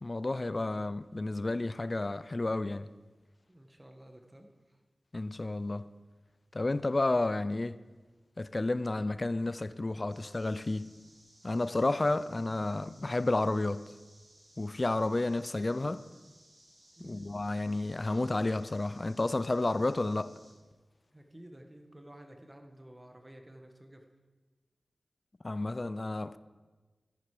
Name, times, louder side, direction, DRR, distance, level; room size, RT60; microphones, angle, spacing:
voice 1, 0.0-2.9 5.1-5.9 6.5-7.8 8.4-10.9 11.4-13.8 14.6-16.0 17.0-20.3 25.4-26.4, left 2 dB, 40° left, 0.5 m, -31 dB
voice 2, 3.5-4.8 16.9-17.3 21.1-24.1, right 1 dB, 20° right, 1.6 m, -52 dB
sound 1, 10.1-20.5, right 1 dB, 50° right, 5.0 m, -61 dB
14.0 x 10.5 x 5.1 m
wide cardioid pair, 60°, 0 cm